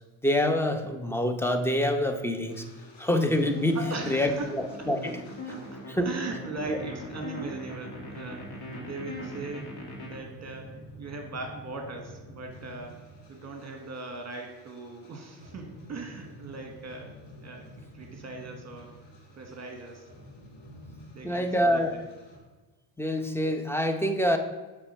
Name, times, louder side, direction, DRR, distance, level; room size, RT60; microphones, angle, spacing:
voice 1, 0.2-2.6 3.0-3.8 4.1-5.2 5.9-6.1 6.7-6.8 21.2-22.0 23.0-24.4, left 1 dB, 5° left, 6 dB, 0.7 m, -26 dB
sound 1, 2.5-6.2 6.5-22.4, equal, 80° left, 1.9 m, -49 dB
sound 2, 3.4-10.2, left 2 dB, 55° left, 2.1 m, -40 dB
voice 2, 3.7-4.5 5.0-5.1 5.5-9.7 10.0-13.0 13.3-17.7 17.9-18.9 19.4-20.1 21.1-22.0, right 3 dB, 35° right, 3 dB, 1.4 m, -39 dB
7.8 x 3.4 x 5.4 m, 1.2 s
supercardioid pair, 75°, 44 cm